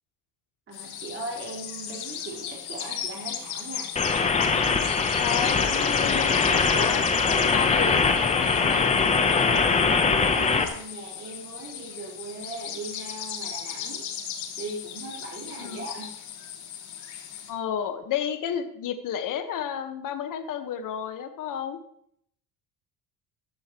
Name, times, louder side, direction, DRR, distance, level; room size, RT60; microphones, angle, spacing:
sound 1, 0.7-17.5, left 9 dB, 70° left, 3.4 m, -37 dB
voice 1, 0.7-3.9 9.5-14.0 14.6-16.2, right 2 dB, 30° right, -3 dB, 4.7 m, -39 dB
sound 2, 4.0-10.6, left 5 dB, 15° left, 0.9 m, -22 dB
voice 2, 5.2-8.9 15.6-15.8 17.5-21.8, left 9 dB, 50° left, 7 dB, 1.5 m, -32 dB
15.5 x 13.5 x 3.1 m, 0.71 s
cardioid pair, 165°, 41 cm